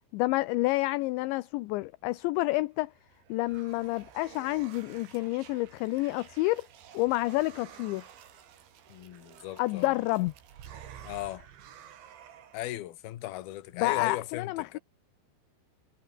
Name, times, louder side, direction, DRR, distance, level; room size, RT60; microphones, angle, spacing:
voice 1, 0.1-2.9 3.3-6.7 6.9-8.0 9.6-10.3 13.8-14.8, left 20 dB, 80° left, 2.7 m, -29 dB
sound 1, 2.8-12.8, right 9 dB, 65° right, 5.0 m, -51 dB
voice 2, 8.9-10.0 11.0-11.5 12.5-14.8, left 15 dB, 65° left, 2.8 m, -37 dB
omnidirectional pair, 5.9 m